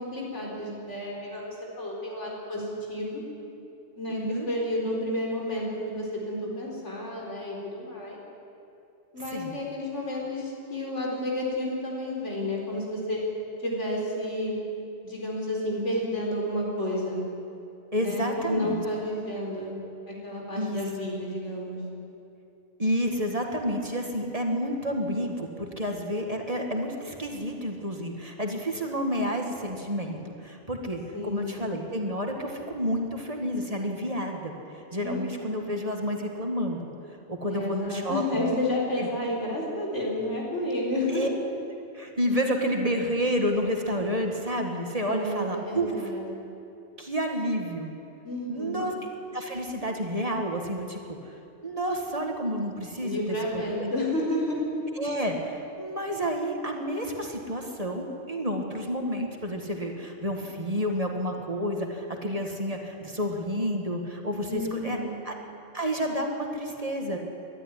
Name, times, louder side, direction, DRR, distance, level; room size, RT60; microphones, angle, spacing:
voice 1, 0.0-3.2 4.0-8.2 9.1-13.2 13.6-14.5 15.0-17.2 18.0-19.7 20.1-21.8 31.1-31.6 35.0-35.6 37.5-41.3 45.0-46.3 48.2-48.9 53.0-54.6 64.5-65.2, left 1 dB, 85° left, -2 dB, 4.6 m, -31 dB
voice 2, 4.1-4.5 9.3-9.5 17.9-18.8 20.6-20.8 22.8-36.9 37.3-38.2 39.0-39.1 41.1-41.3 41.9-45.9 47.0-47.9 48.5-48.9 49.3-51.3 51.6-53.2 53.5-53.9 55.0-65.0 65.3-65.4 65.7-67.2, equal, 30° right, 2 dB, 2.0 m, -30 dB
21.0 x 12.5 x 10.0 m, 2.8 s
omnidirectional pair, 1.2 m